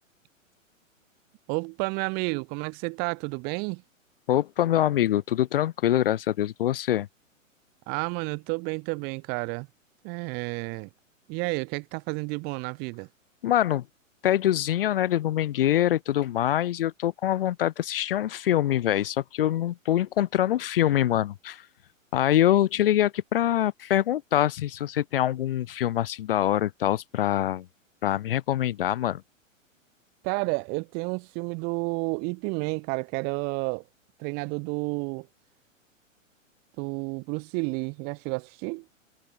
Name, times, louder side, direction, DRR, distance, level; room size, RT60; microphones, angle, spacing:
voice 1, 1.5-3.8 7.9-9.7 10.0-10.9 11.3-13.1 30.2-33.8 34.2-35.3 36.8-38.8, right 33 dB, 25° right, 1.2 m, -31 dB
voice 2, 4.3-7.1 13.4-13.8 14.2-21.7 22.1-27.7 28.0-29.2, left 12 dB, 45° left, 1.1 m, -24 dB
figure-of-eight pair, 115°, 40 cm